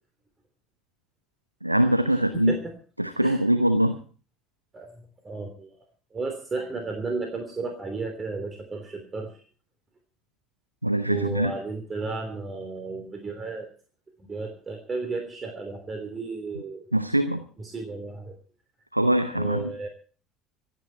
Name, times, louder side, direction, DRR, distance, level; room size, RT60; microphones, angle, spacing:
voice 1, 1.6-2.5 3.0-4.0 10.8-11.5 16.9-17.4 18.9-19.7, right 1 dB, 90° right, 10 dB, 0.8 m, -23 dB
voice 2, 2.3-2.7 3.2-3.4 4.7-5.8 6.1-9.4 11.1-13.7 14.2-16.9 17.6-18.4 19.3-19.9, right 3 dB, 25° right, 5 dB, 3.1 m, -33 dB
25.5 x 9.3 x 4.6 m, 0.41 s
figure-of-eight pair, 60°, 0 cm